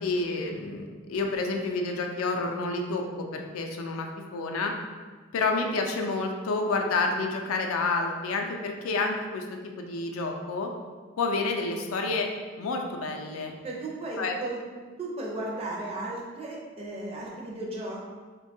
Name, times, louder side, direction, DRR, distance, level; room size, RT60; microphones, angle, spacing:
voice 1, 0.0-4.7 5.3-9.4 9.8-10.7 11.2-12.3 12.6-13.5 14.2-14.4, left 3 dB, 80° left, 3 dB, 0.4 m, -29 dB
voice 2, 13.6-14.6 15.0-18.0, right 2 dB, 25° right, -3 dB, 0.4 m, -35 dB
3.5 x 2.2 x 2.6 m, 1.4 s
head